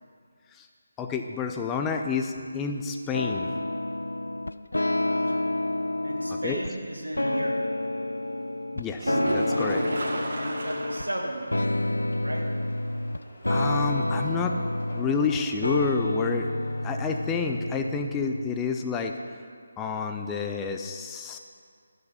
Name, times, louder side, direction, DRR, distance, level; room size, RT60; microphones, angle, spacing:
voice 1, 1.0-3.5 6.3-6.6 8.7-9.8 10.2-10.4 13.5-14.6 14.9-16.5 16.8-19.2 19.8-21.4, left 5 dB, 10° left, 4 dB, 0.5 m, -29 dB
sound 1, 3.1-6.7 7.2-11.1 11.5-18.6, left 1 dB, 75° left, 0.3 m, -29 dB
voice 2, 5.0-5.4 6.0-7.7 9.9-10.0 10.4-12.5, right 1 dB, 75° right, 1 dB, 1.6 m, -35 dB
sound 2, 8.9-11.2 11.5-11.6 12.1-12.2 15.9-16.0, right 1 dB, 45° right, 1.7 m, -31 dB
sound 3, 9.5-17.2, left 1 dB, 55° left, 2.9 m, -50 dB
13.5 x 6.3 x 5.7 m, 2.1 s
figure-of-eight pair, 150°, 0 cm